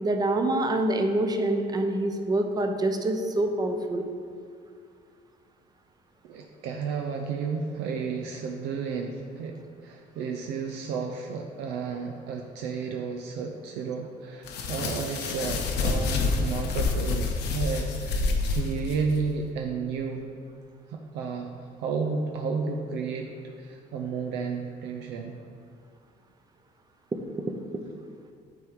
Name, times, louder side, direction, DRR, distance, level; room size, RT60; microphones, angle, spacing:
voice 1, 0.0-4.0, right 1 dB, 25° right, 5 dB, 0.7 m, -26 dB
voice 2, 6.2-20.3 20.9-23.3 23.6-25.4, right 5 dB, 90° right, 3 dB, 0.6 m, -32 dB
sound 1, 14.4-19.2, left 4 dB, 80° left, 0.9 m, -28 dB
9.0 x 3.7 x 4.6 m, 2.2 s
cardioid pair, 110°, 17 cm